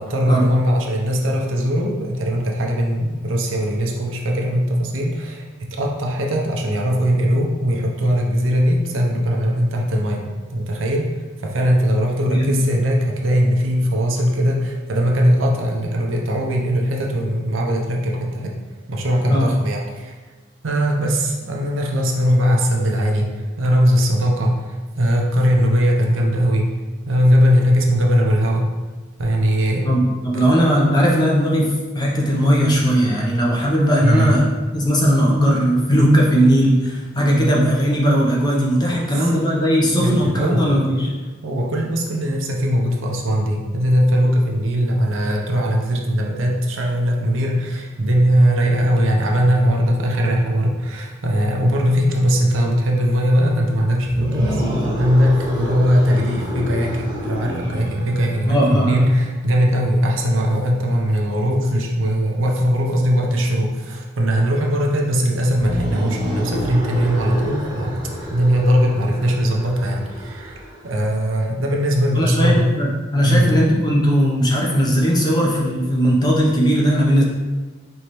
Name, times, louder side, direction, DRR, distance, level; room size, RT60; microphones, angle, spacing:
voice 1, 0.0-11.1 11.4-18.5 18.9-20.1 20.6-26.7 27.1-28.7 29.2-29.9 30.3-30.5 34.0-34.4 37.3-37.5 39.0-39.3 39.6-41.1 41.4-54.6 55.0-68.0 68.3-70.6 70.8-72.7 73.2-73.5, equal, 80° right, 0 dB, 0.7 m, -19 dB
voice 2, 29.8-34.4 34.7-41.1 58.5-59.0 72.1-77.2, equal, 20° left, -3 dB, 0.7 m, -18 dB
sound 1, 54.0-59.2 65.4-71.1, equal, 20° right, 0.7 m, -28 dB
4.6 x 3.1 x 3.0 m, 1.3 s
head